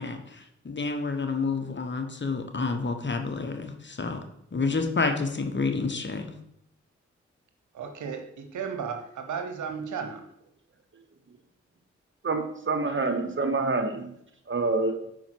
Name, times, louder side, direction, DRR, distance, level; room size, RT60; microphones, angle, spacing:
voice 1, 0.0-4.2 4.5-6.3, left 4 dB, 40° left, 6 dB, 1.1 m, -29 dB
voice 2, 7.7-10.2, right 6 dB, 80° right, 5 dB, 0.8 m, -34 dB
voice 3, 12.2-14.2 14.5-14.9, right 3 dB, 40° right, 6 dB, 1.1 m, -27 dB
5.5 x 4.4 x 4.6 m, 0.75 s
supercardioid pair, 40°, 29 cm